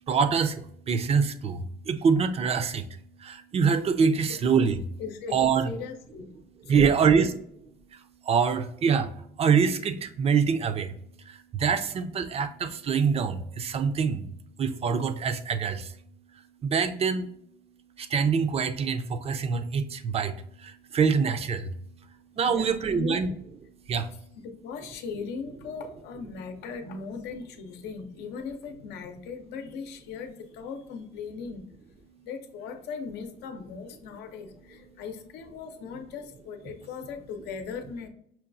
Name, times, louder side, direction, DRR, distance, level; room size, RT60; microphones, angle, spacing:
voice 1, 0.1-0.5 0.9-1.6 1.9-2.8 3.5-4.8 5.3-5.7 6.7-7.3 8.3-9.1 9.4-10.9 11.5-14.2 14.6-15.8 16.7-17.3 18.1-19.8 20.1-20.3 20.9-21.6 22.4-23.3 23.9-24.0, right 6 dB, 35° right, 10 dB, 0.4 m, -24 dB
voice 2, 5.0-5.4 5.6-6.3 6.6-7.2 22.4-23.3 24.4-31.7 32.2-38.1, left 5 dB, 85° left, 5 dB, 0.6 m, -38 dB
5.7 x 2.3 x 2.6 m, 0.71 s
cardioid pair, 110°, 17 cm